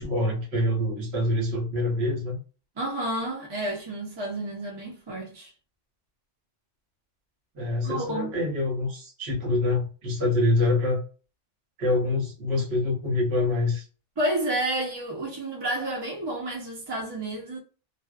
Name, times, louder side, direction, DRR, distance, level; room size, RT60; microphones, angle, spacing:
voice 1, 0.0-2.4 7.5-11.0 11.8-13.8, left 2 dB, 60° right, 1.1 m, -25 dB
voice 2, 2.8-5.5 7.8-8.3 14.2-17.6, right 1 dB, 30° right, 0.5 m, -30 dB
2.4 x 2.1 x 2.4 m
omnidirectional pair, 1.2 m